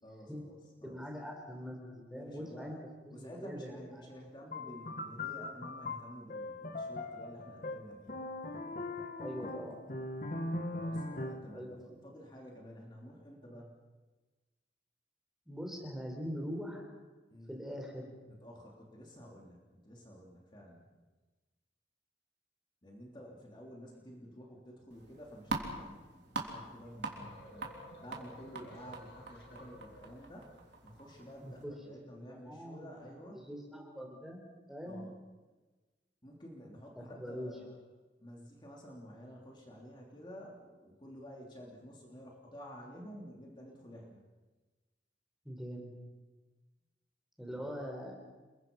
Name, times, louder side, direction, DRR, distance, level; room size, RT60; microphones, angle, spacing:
voice 1, 0.0-1.0 2.1-2.7 3.1-8.2 10.8-13.8 17.3-17.5 18.3-20.9 22.8-27.7 28.0-30.5 30.8-33.4 34.8-35.1 36.2-37.8 38.2-44.2 47.5-47.7, equal, 25° left, -2 dB, 3.3 m, -51 dB
voice 2, 0.8-2.8 3.0-4.1 9.2-9.9 11.4-12.0 15.5-16.8 17.5-18.2 31.4-35.1 36.9-37.6 45.4-45.9 47.4-48.2, equal, ahead, 1 dB, 4.2 m, -43 dB
sound 1, 4.5-11.6, left 2 dB, 45° left, 1.8 m, -40 dB
sound 2, 24.9-31.6, right 3 dB, 75° right, 3.6 m, -44 dB
sound 3, 26.9-30.7, equal, 65° left, 6.9 m, -54 dB
29.0 x 22.5 x 5.6 m, 1.3 s
head